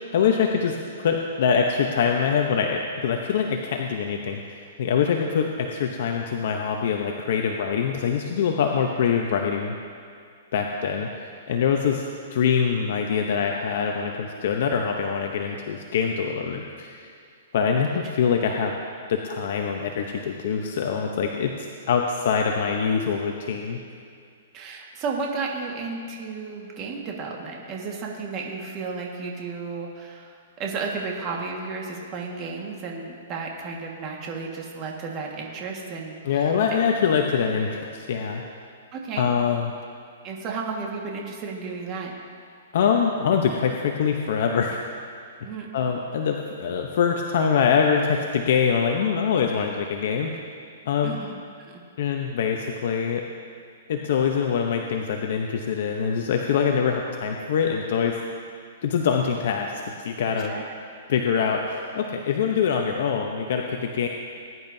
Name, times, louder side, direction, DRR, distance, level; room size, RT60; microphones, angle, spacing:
voice 1, 0.1-9.7 10.5-11.1 11.5-17.1 17.5-18.8 19.1-23.8 36.2-38.4 39.2-39.7 42.7-44.8 45.7-50.4 50.9-51.1 52.0-53.3 53.9-58.2 58.8-60.6 61.1-64.1, left 6 dB, 60° left, 2 dB, 0.8 m, -24 dB
voice 2, 24.5-36.5 38.9-39.3 40.2-42.1 45.4-45.7 51.0-51.3 51.6-51.7 60.4-60.7, right 4 dB, 30° right, -1 dB, 1.7 m, -33 dB
20.0 x 10.5 x 2.7 m, 2.3 s
hypercardioid pair, 155°, 0 cm